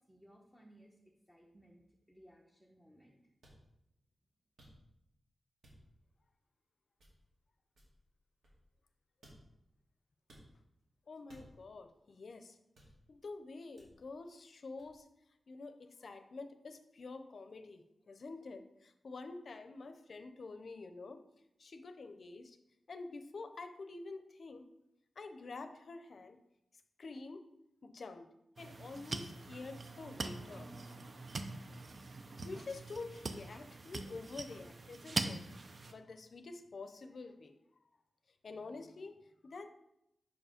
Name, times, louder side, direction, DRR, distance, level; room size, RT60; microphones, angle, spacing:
voice 1, 0.1-3.3, equal, 5° right, -2 dB, 0.8 m, -62 dB
sound 1, 3.4-3.6 4.6-5.0 5.6-6.0 7.0-7.4 7.7-8.9 9.2-9.7 10.3-10.5 11.3-11.8 12.8-13.2 13.8-14.1 14.8-15.0, equal, 80° right, 2.1 m, -61 dB
voice 2, 11.1-12.6 13.1-15.0 15.5-21.2 21.6-22.6 22.9-24.7 25.2-26.4 27.0-27.4 27.8-30.7 32.4-37.5 38.4-39.7, left 3 dB, 60° left, 9 dB, 0.6 m, -48 dB
sound 2, 28.6-35.9, right 3 dB, 45° right, 0.5 m, -43 dB
5.2 x 4.9 x 5.0 m, 0.85 s
wide cardioid pair, 100°, 0 cm